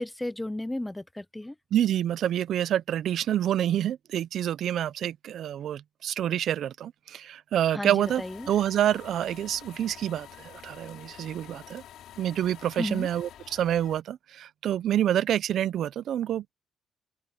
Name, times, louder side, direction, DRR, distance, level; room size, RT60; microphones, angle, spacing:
voice 1, 0.0-1.5 7.7-8.5 12.8-13.1, left 1 dB, 10° left, 0.6 m, -33 dB
voice 2, 1.7-11.8 12.2-16.5, right 11 dB, 70° right, 0.5 m, -27 dB
sound 1, 8.0-14.0, left 11 dB, 80° left, 4.0 m, -48 dB
open air
cardioid pair, 90°, 0 cm